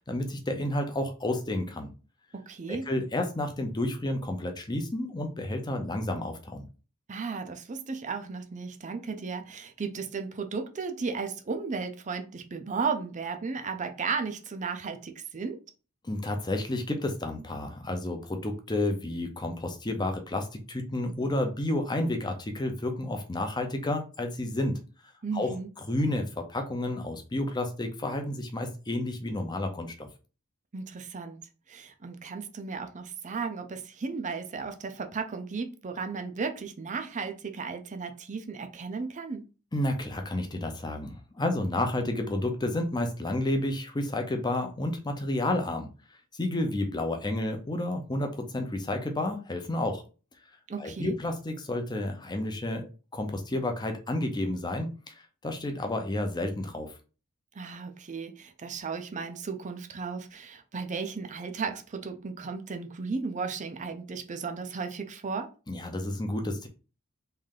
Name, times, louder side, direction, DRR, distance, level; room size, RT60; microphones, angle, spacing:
voice 1, 0.0-1.9 2.7-6.7 16.0-24.8 25.3-25.5 25.9-30.1 39.7-45.9 46.4-50.0 50.8-55.1 55.4-56.9 65.7-66.7, left 1 dB, 20° left, 0.6 m, -31 dB
voice 2, 2.3-2.9 7.1-15.6 25.2-25.7 30.7-39.5 50.7-51.2 57.5-65.5, right 5 dB, 35° right, 0.5 m, -35 dB
3.3 x 2.7 x 3.7 m
head